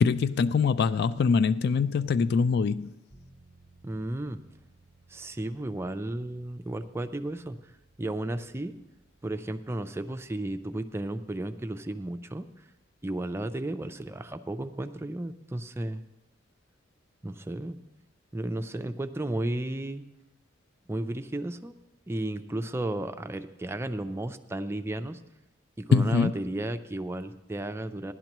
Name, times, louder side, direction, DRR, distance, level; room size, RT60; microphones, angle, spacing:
voice 1, 0.0-2.9 25.9-26.3, left 5 dB, 55° left, 0.3 m, -23 dB
sound 1, 3.1-15.0, right 2 dB, 25° left, 1.5 m, -63 dB
voice 2, 3.8-4.4 5.1-7.6 8.0-8.8 9.2-12.5 13.0-16.0 17.2-17.8 18.3-20.0 20.9-21.7 22.1-25.2 25.8-28.1, right 1 dB, 15° right, 0.4 m, -33 dB
16.0 x 11.0 x 3.0 m
head